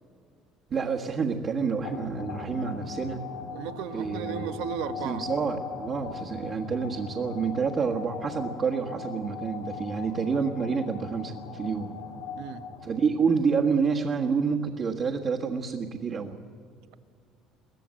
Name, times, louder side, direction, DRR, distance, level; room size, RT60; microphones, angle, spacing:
voice 1, 0.7-3.2 3.9-4.5 5.0-11.9 12.8-16.4, right 5 dB, 35° right, -3 dB, 1.5 m, -28 dB
sound 1, 1.8-13.2, left 6 dB, 90° left, 3.9 m, -40 dB
voice 2, 3.5-5.2 12.3-12.6, right 9 dB, 80° right, 9 dB, 1.2 m, -35 dB
23.0 x 17.0 x 7.7 m, 2.3 s
cardioid pair, 140°, 0 cm